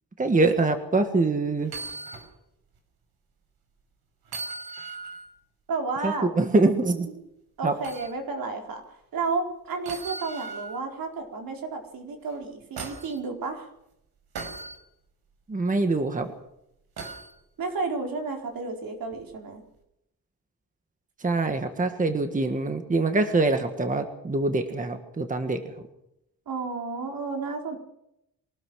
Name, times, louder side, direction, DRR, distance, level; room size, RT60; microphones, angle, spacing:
voice 1, 0.2-1.7 6.0-7.1 7.6-7.7 15.5-16.3 21.2-25.9, right 3 dB, 20° right, 7 dB, 1.6 m, -24 dB
sound 1, 1.6-2.3 2.7-2.8 4.2-5.3 7.8-8.1 9.8-10.8 12.3-13.2 14.3-14.8 17.0-17.3 19.1-19.2, right 4 dB, 90° right, 5.2 m, -38 dB
voice 2, 5.7-6.3 7.6-13.7 17.6-19.6 26.5-27.8, right 4 dB, 65° right, 3 dB, 4.4 m, -32 dB
23.5 x 19.0 x 6.4 m, 0.81 s
wide cardioid pair, 170°, 36 cm